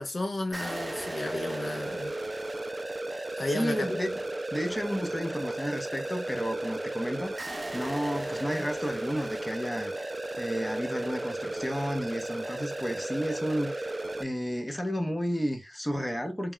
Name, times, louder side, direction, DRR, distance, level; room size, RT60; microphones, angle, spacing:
voice 1, 0.0-2.1 3.4-4.0, left 2 dB, 50° left, 0.6 m, -33 dB
sound 1, 0.5-14.2, right 2 dB, 30° right, 0.3 m, -34 dB
voice 2, 3.5-4.2 4.5-9.9 10.4-16.5, equal, 10° left, 0.6 m, -32 dB
2.2 x 2.2 x 3.6 m
cardioid pair, 45°, 0 cm